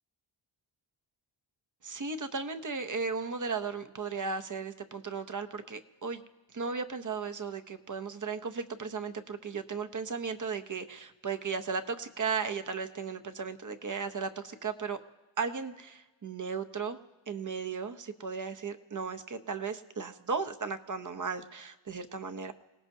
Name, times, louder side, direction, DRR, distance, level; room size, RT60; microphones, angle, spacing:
voice 1, 1.8-6.2 6.5-15.0 15.4-17.0 17.3-22.5, right 5 dB, 40° right, 8 dB, 0.8 m, -36 dB
28.0 x 18.5 x 2.7 m, 1.2 s
wide cardioid pair, 115°, 50 cm